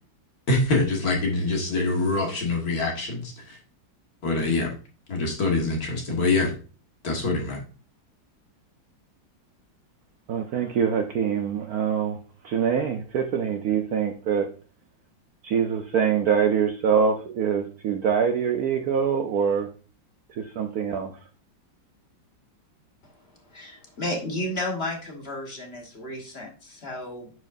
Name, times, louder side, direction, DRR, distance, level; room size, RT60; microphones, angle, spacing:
voice 1, 0.5-3.6 4.2-4.7 5.1-6.5 7.0-7.6, left 3 dB, 50° left, 0 dB, 2.1 m, -25 dB
voice 2, 10.3-12.2 12.4-14.5 15.4-19.7 20.3-21.1, right 7 dB, 65° right, 5 dB, 1.0 m, -24 dB
voice 3, 23.4-27.3, left 1 dB, 35° left, 1 dB, 1.4 m, -33 dB
9.8 x 4.9 x 2.6 m, 0.36 s
omnidirectional pair, 2.1 m